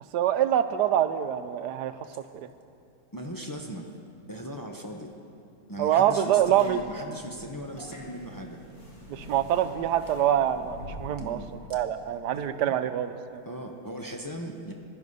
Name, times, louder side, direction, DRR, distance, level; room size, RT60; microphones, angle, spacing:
voice 1, 0.1-2.0 2.3-2.5 5.8-6.8 9.1-11.4 11.7-13.4, right 10 dB, 75° right, 11 dB, 1.2 m, -25 dB
voice 2, 3.1-3.9 4.3-5.1 5.7-8.6 11.2-11.5 12.7-12.8 13.4-14.7, right 1 dB, 20° left, 1 dB, 0.6 m, -38 dB
sound 1, 6.2-11.6, left 1 dB, 85° left, 4.3 m, -45 dB
16.0 x 11.0 x 5.5 m, 2.5 s
omnidirectional pair, 1.8 m